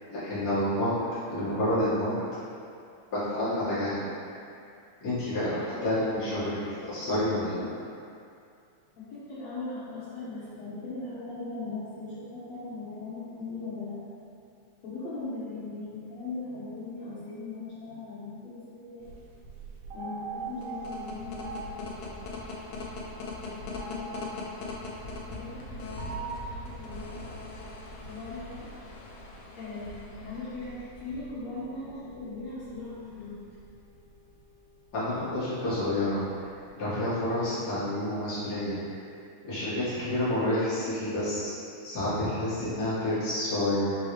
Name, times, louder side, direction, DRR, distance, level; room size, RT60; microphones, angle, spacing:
voice 1, 0.1-0.9 1.3-2.1 3.1-4.1 5.0-7.9 34.9-36.5 36.8-39.0 39.4-41.5 41.8-44.0, left 1 dB, 40° left, -12 dB, 1.5 m, -29 dB
voice 2, 9.0-14.0 14.8-19.0 19.9-22.1 23.4-24.2 25.3-27.2 28.1-28.7 29.6-29.9 30.2-33.4, left 3 dB, 70° left, -11 dB, 1.9 m, -39 dB
sound 1, 19.0-36.7, right 4 dB, 80° right, 2.1 m, -44 dB
sound 2, 20.5-31.2, left 2 dB, 90° left, 1.5 m, -41 dB
5.4 x 3.1 x 3.1 m, 2.4 s
omnidirectional pair, 3.6 m